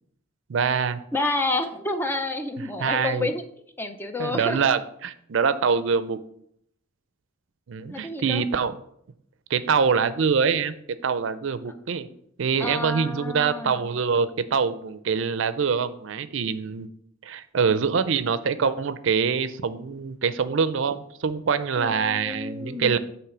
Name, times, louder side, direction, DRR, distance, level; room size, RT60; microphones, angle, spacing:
voice 1, 0.5-1.0 2.8-3.3 4.2-6.2 7.7-8.8 9.5-12.1 12.4-16.9 17.2-23.0, right 6 dB, 65° right, 13 dB, 0.4 m, -24 dB
voice 2, 1.1-3.4 3.8-4.7 7.9-8.4 12.6-13.9 21.8-23.0, left 2 dB, 10° left, 7 dB, 0.5 m, -29 dB
8.0 x 3.1 x 5.9 m, 0.69 s
head